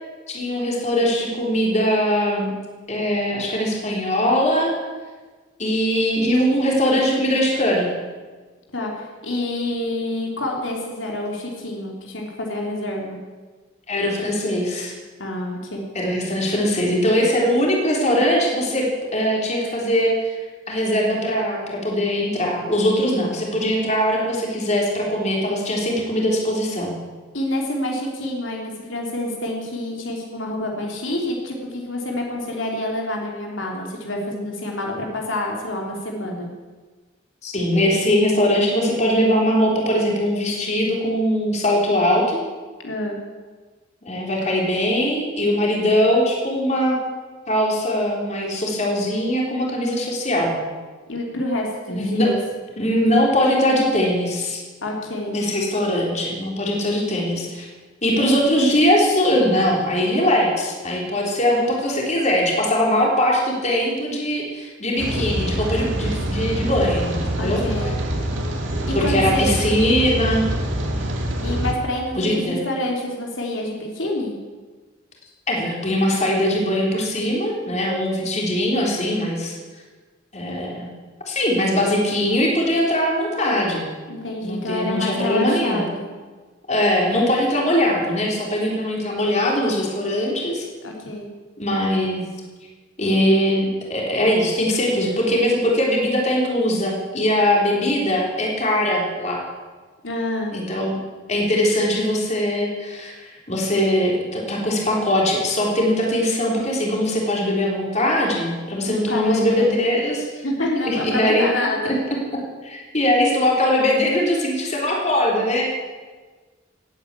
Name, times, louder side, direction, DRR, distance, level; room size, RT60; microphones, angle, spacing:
voice 1, 0.3-2.5 2.9-4.7 5.6-7.9 13.9-14.9 15.9-18.8 19.1-20.4 20.7-26.9 37.4-42.4 44.0-47.0 47.5-50.6 51.9-52.3 52.8-54.6 55.3-57.7 58.0-67.6 68.9-70.5 72.2-72.6 75.5-79.5 80.3-80.9 81.3-83.9 84.4-85.8 86.7-90.6 91.6-92.2 93.0-99.4 100.5-100.9 101.3-103.1 103.5-110.4 110.8-111.4 111.8-112.2 112.6-115.7, equal, 35° left, -2 dB, 3.8 m, -21 dB
voice 2, 8.7-13.2 15.2-15.8 27.3-36.5 42.8-43.2 51.1-52.4 54.8-55.4 67.4-67.9 68.9-69.5 71.4-74.3 84.1-86.1 90.8-91.3 100.0-100.5 108.8-109.7 110.4-111.9, left 1 dB, 85° left, 0 dB, 3.3 m, -27 dB
Rain, 65.0-71.7, right 1 dB, 80° right, 2.6 m, -25 dB
18.5 x 9.4 x 8.4 m, 1.4 s
head